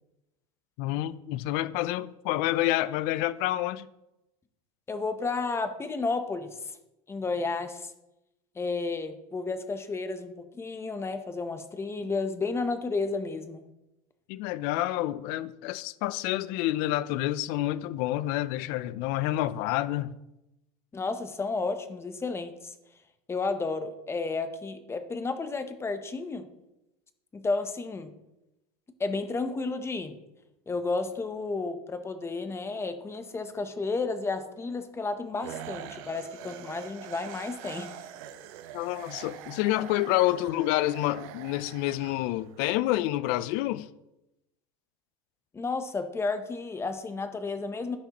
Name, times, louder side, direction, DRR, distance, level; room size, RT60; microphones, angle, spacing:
voice 1, 0.8-3.9 14.3-20.1 38.7-43.9, left 15 dB, 55° left, 0.5 m, -28 dB
voice 2, 4.9-6.8 7.1-7.9 8.6-13.6 20.9-22.7 23.3-26.5 27.3-28.1 29.0-30.2 30.7-37.9 45.5-48.0, left 3 dB, 15° left, 0.7 m, -32 dB
sound 1, 35.4-42.6, right 10 dB, 65° right, 0.8 m, -44 dB
14.0 x 5.8 x 2.9 m
supercardioid pair, 140°, 19 cm